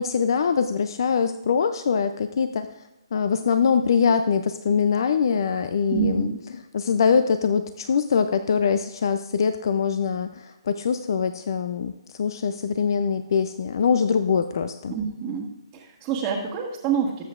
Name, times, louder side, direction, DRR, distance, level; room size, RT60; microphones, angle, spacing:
voice 1, 0.0-2.7 3.1-6.3 6.7-14.9, left 6 dB, 55° left, 10 dB, 0.5 m, -23 dB
voice 2, 5.9-6.4 14.9-17.3, right 6 dB, 20° right, -5 dB, 1.4 m, -27 dB
19.0 x 8.1 x 2.5 m, 0.94 s
hypercardioid pair, 145°, 3 cm